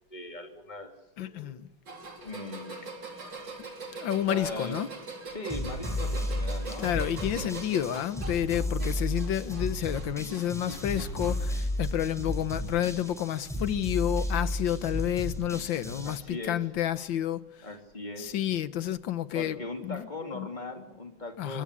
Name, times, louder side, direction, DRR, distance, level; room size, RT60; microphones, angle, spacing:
voice 1, 0.1-0.9 1.2-1.5 2.2-2.8 3.7-3.9 4.3-4.8 5.3-7.6 16.0-16.6 17.6-18.3 19.3-21.6, left 2 dB, 20° left, 3.1 m, -39 dB
voice 2, 1.2-1.7 2.2-2.3 3.9-4.9 6.8-17.7 18.2-20.1 20.3-20.5 21.4-21.6, left 11 dB, 70° left, 1.8 m, -30 dB
sound 1, 1.9-11.5 11.9-12.5 13.6-13.7 14.8-14.9, right 3 dB, 65° right, 4.1 m, -43 dB
sound 2, 5.5-16.2, left 1 dB, ahead, 5.5 m, -33 dB
26.0 x 20.0 x 8.4 m
omnidirectional pair, 2.1 m